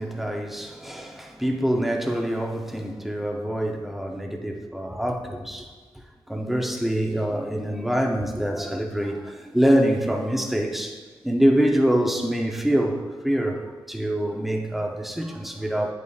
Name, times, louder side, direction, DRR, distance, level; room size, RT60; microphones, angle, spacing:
voice 1, 0.0-5.7 6.3-11.0 11.2-15.9, equal, ahead, 0.6 m, -25 dB
9.3 x 8.4 x 2.3 m
wide cardioid pair, 170°, 10 cm